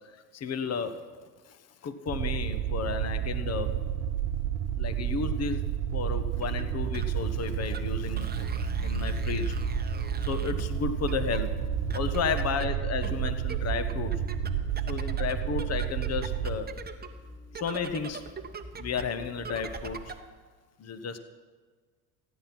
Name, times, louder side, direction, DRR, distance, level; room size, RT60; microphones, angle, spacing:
voice 1, 0.3-1.1 1.5-1.6 1.8-3.8 4.8-8.5 8.8-9.6 10.3-11.5 11.9-14.1 14.9-16.7 17.5-18.3 18.8-20.1 20.8-21.2, left 6 dB, 35° left, 10 dB, 1.1 m, -33 dB
sound 1, 2.1-16.6, right 10 dB, 70° right, 1.2 m, -31 dB
sound 2, 6.2-20.3, right 1 dB, 20° right, 1.0 m, -40 dB
15.0 x 9.3 x 5.9 m, 1.5 s
hypercardioid pair, 75°, 46 cm